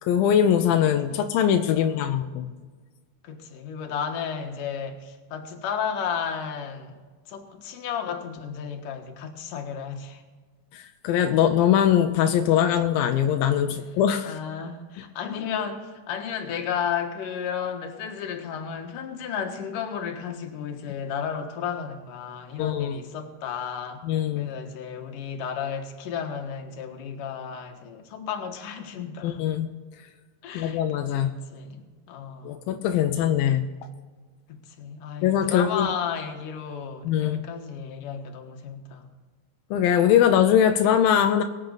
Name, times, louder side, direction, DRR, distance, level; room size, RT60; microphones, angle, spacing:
voice 1, 0.0-2.5 10.7-14.4 22.6-23.0 24.0-24.5 29.2-29.7 30.5-31.3 32.4-33.7 35.2-35.9 37.0-37.4 39.7-41.4, left 9 dB, 90° left, 6 dB, 2.5 m, -22 dB
voice 2, 1.7-2.2 3.2-7.0 7.3-10.2 14.3-24.0 24.4-29.5 30.4-30.8 31.1-32.6 34.5-39.1, left 7 dB, 70° left, 4 dB, 2.9 m, -33 dB
23.0 x 8.6 x 4.0 m, 1.4 s
omnidirectional pair, 4.0 m